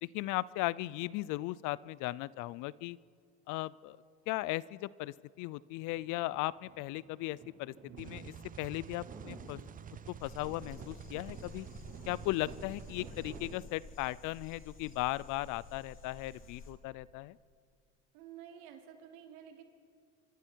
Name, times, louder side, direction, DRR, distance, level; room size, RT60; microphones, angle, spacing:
voice 1, 0.0-3.0 3.5-4.0 4.3-9.6 10.1-11.7 12.1-17.4, left 18 dB, 60° left, 21 dB, 0.6 m, -37 dB
sound 1, 5.6-6.3 6.5-13.7, right 4 dB, 50° right, 5.2 m, -53 dB
sound 2, 8.0-13.5, right 9 dB, 25° right, 0.6 m, -49 dB
sound 3, 10.2-16.7, left 3 dB, 35° left, 3.7 m, -52 dB
voice 2, 18.1-19.6, right 9 dB, 75° right, 3 dB, 3.3 m, -51 dB
27.5 x 24.0 x 4.6 m, 2.3 s
supercardioid pair, 100°, 34 cm